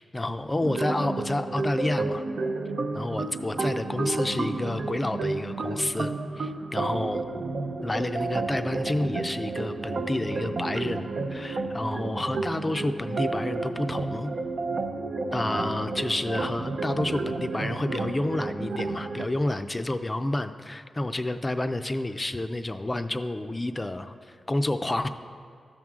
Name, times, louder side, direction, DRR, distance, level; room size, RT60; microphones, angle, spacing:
voice 1, 0.0-2.2 2.9-7.3 7.8-14.3 15.3-25.1, left 1 dB, 20° left, 9 dB, 0.4 m, -29 dB
sound 1, 0.6-19.3, right 3 dB, 65° right, 0.6 m, -31 dB
13.0 x 6.1 x 3.6 m, 2.2 s
cardioid pair, 80°, 0 cm